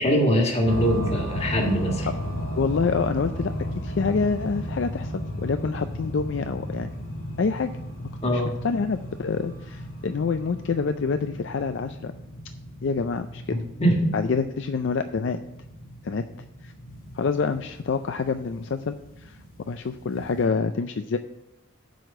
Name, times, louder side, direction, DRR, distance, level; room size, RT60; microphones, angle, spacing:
voice 1, 0.0-2.1 8.2-8.5 13.5-14.1, equal, 30° left, 2 dB, 1.6 m, -22 dB
sound 1, 0.6-20.4, equal, 80° left, 2.3 m, -35 dB
voice 2, 2.5-3.5 3.8-6.9 7.4-7.7 8.3-12.1 12.8-13.6 14.1-15.4 16.0-16.2 16.6-16.7 17.1-19.4 19.7-21.2, left 5 dB, 55° left, 8 dB, 0.4 m, -27 dB
7.8 x 4.9 x 7.2 m, 0.91 s
head